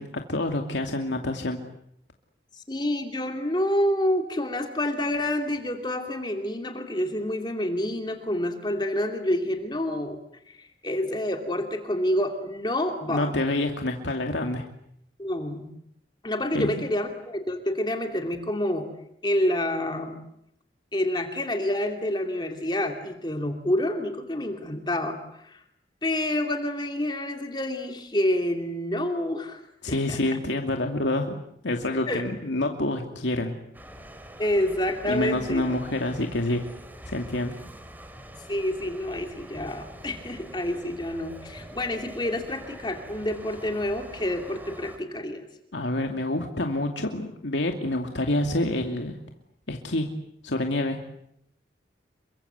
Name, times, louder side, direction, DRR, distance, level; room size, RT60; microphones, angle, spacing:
voice 1, 0.0-1.6 13.1-14.7 16.5-16.9 29.8-31.4 31.6-33.6 35.1-36.7 37.1-37.6 45.7-49.2 49.7-50.1 50.4-51.0, left 1 dB, 90° left, 4 dB, 2.5 m, -27 dB
voice 2, 2.6-10.2 10.5-13.3 15.2-15.7 16.2-18.9 19.2-20.2 20.9-25.6 26.0-29.6 29.9-30.4 32.1-32.2 34.4-35.6 38.5-45.4, left 1 dB, 25° left, 5 dB, 2.7 m, -28 dB
sound 1, 33.7-45.0, equal, 10° right, 3.5 m, -44 dB
29.5 x 24.0 x 8.1 m, 0.75 s
head